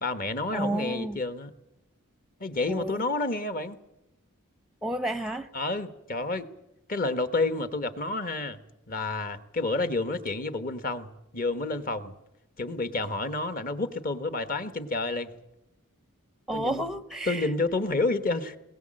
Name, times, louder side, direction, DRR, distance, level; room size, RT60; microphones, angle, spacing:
voice 1, 0.0-1.5 2.4-3.8 5.5-6.5 6.9-8.6 8.9-12.1 12.6-15.3 16.5-16.8 17.3-18.6, left 2 dB, 40° left, 11 dB, 1.2 m, -29 dB
voice 2, 0.5-1.2 2.7-3.0 4.8-5.5 16.5-17.5, right 1 dB, ahead, 13 dB, 0.7 m, -31 dB
21.0 x 18.5 x 7.7 m, 0.90 s
head